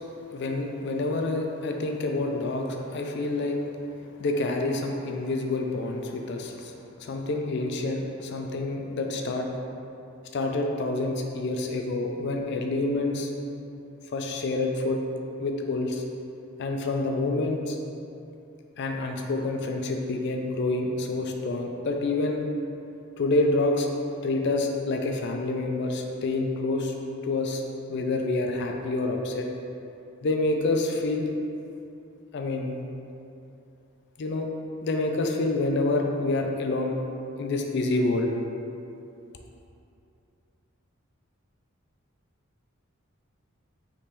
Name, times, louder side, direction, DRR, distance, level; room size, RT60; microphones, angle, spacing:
voice 1, 0.3-3.6 4.2-6.7 7.0-9.5 10.3-13.3 14.1-15.0 15.4-16.0 16.6-17.8 18.8-22.4 23.2-23.9 24.2-26.9 27.2-27.6 27.9-29.5 30.2-31.3 32.3-32.8 34.2-34.5 34.8-37.0 37.4-38.3, left 2 dB, 55° left, 3 dB, 0.4 m, -27 dB
5.1 x 3.1 x 2.9 m, 2.7 s
head